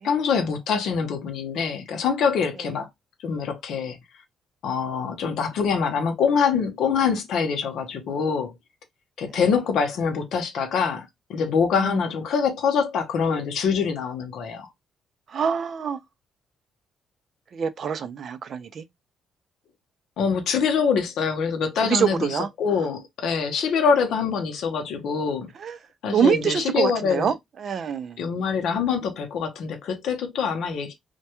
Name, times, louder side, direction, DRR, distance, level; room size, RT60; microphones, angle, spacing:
voice 1, 0.0-2.9 3.2-4.0 4.6-8.5 9.2-14.7 20.2-25.5 26.0-27.3 28.2-30.9, left 6 dB, 75° left, 0.6 m, -24 dB
voice 2, 15.3-16.0 17.5-18.9 21.8-22.5 25.6-25.8 26.1-28.2, right 7 dB, 55° right, 0.4 m, -25 dB
2.2 x 2.2 x 2.8 m
cardioid pair, 90°, 0 cm